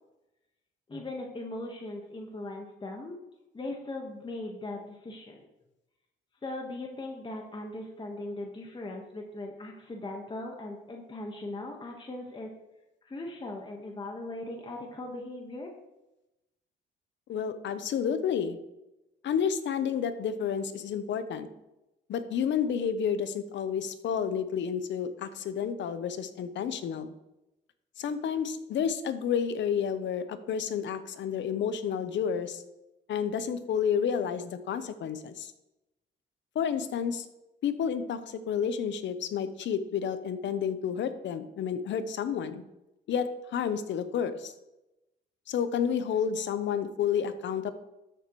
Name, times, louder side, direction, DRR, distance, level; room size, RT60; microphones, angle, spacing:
voice 1, 0.9-3.2 3.5-5.4 6.4-12.5 13.0-15.7, left 2 dB, 25° left, 1 dB, 1.5 m, -39 dB
voice 2, 17.3-18.6 19.2-21.5 22.1-27.1 28.0-32.6 33.1-35.5 36.5-37.3 37.6-42.6 43.1-44.5 45.5-47.7, left 7 dB, 65° left, 11 dB, 0.9 m, -30 dB
13.0 x 6.8 x 3.2 m, 0.94 s
cardioid pair, 90°, 20 cm